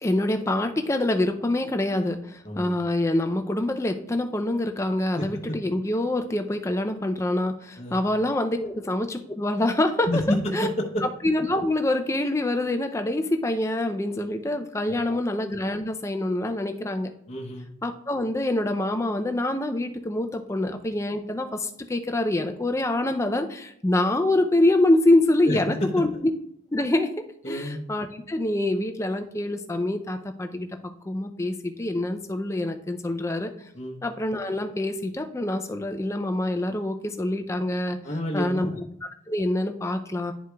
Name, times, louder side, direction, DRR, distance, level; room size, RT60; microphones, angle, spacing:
voice 1, 0.0-10.2 10.5-10.7 11.2-17.1 17.8-26.3 26.7-30.7 31.1-33.5 34.0-38.0 38.3-38.7 39.3-40.3, left 1 dB, 15° left, 6 dB, 0.4 m, -25 dB
voice 2, 5.1-5.6 7.8-8.0 10.1-11.0 15.0-15.2 17.3-17.7 25.5-25.9 27.4-27.8 33.7-34.0 38.0-38.8, left 1 dB, 30° left, -1 dB, 0.8 m, -29 dB
11.0 x 4.7 x 2.3 m, 0.74 s
head